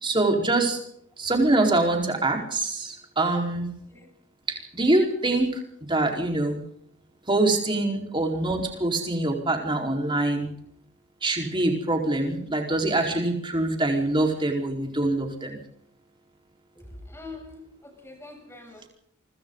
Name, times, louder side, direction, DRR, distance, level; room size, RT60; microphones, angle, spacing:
voice 1, 0.0-0.8 1.2-3.7 4.5-5.6 5.9-6.6 7.3-10.5 11.2-15.6, right 2 dB, 20° right, 2 dB, 4.6 m, -24 dB
voice 2, 16.8-18.9, left 2 dB, 10° left, 3 dB, 7.4 m, -44 dB
27.5 x 25.0 x 4.0 m, 0.69 s
head